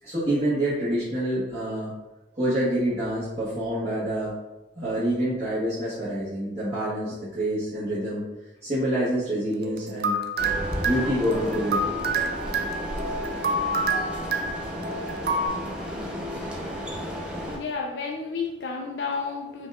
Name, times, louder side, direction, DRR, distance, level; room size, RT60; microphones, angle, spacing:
voice 1, 0.0-1.9 2.3-4.3 4.8-8.2 8.6-10.2 10.8-12.0 14.4-14.5 14.8-15.1 15.5-15.6 15.8-16.4, right 1 dB, 35° right, -12 dB, 1.2 m, -27 dB
sound 1, 9.6-15.5, right 2 dB, 55° right, 0.4 m, -28 dB
sound 2, 10.4-17.6, equal, 5° right, 0.6 m, -33 dB
voice 2, 17.5-19.7, left 4 dB, 80° left, 1 dB, 0.5 m, -31 dB
5.3 x 2.3 x 3.4 m, 1.1 s
head